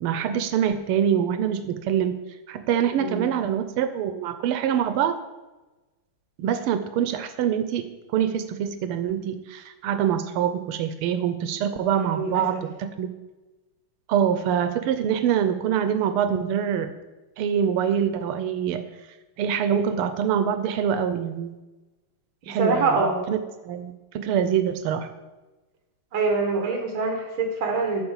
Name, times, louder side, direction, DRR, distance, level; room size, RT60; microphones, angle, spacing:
voice 1, 0.0-5.2 6.4-13.1 14.1-16.9 17.4-18.8 19.4-21.6 22.5-25.1, right 8 dB, 85° right, 10 dB, 1.6 m, -25 dB
voice 2, 11.9-12.6 22.5-23.2 26.1-28.0, right 4 dB, 70° right, 2 dB, 2.0 m, -25 dB
12.0 x 4.7 x 7.2 m, 1.1 s
omnidirectional pair, 2.4 m